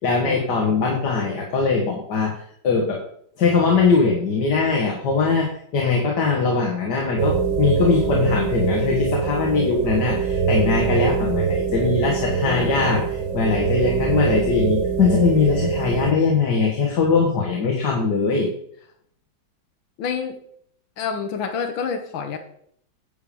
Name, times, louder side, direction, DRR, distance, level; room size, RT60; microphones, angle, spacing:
voice 1, 0.0-3.0 3.4-18.5, left 4 dB, 60° left, 0 dB, 2.1 m, -21 dB
sound 1, 7.2-16.1, right 6 dB, 70° right, 1.7 m, -23 dB
voice 2, 12.4-13.1 20.0-20.4 21.0-22.4, left 6 dB, 80° left, 7 dB, 1.7 m, -28 dB
10.5 x 5.3 x 6.9 m, 0.65 s
omnidirectional pair, 2.1 m